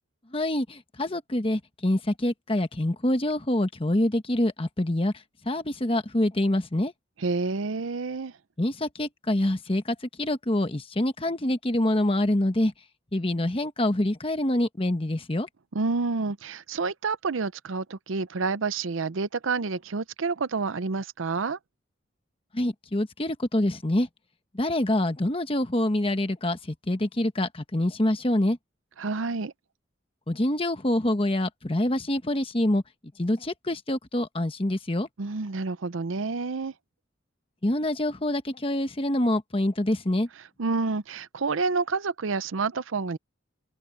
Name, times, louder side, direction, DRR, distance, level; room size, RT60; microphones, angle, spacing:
voice 1, 0.3-5.1 5.4-6.9 8.6-12.7 13.1-15.5 22.5-24.1 24.5-28.6 30.3-32.8 33.2-35.1 37.6-40.3, left 1 dB, 30° left, 1.2 m, -26 dB
voice 2, 7.2-8.3 15.7-21.6 29.0-29.5 35.2-36.7 40.6-43.2, right 4 dB, 85° right, 0.7 m, -29 dB
open air
head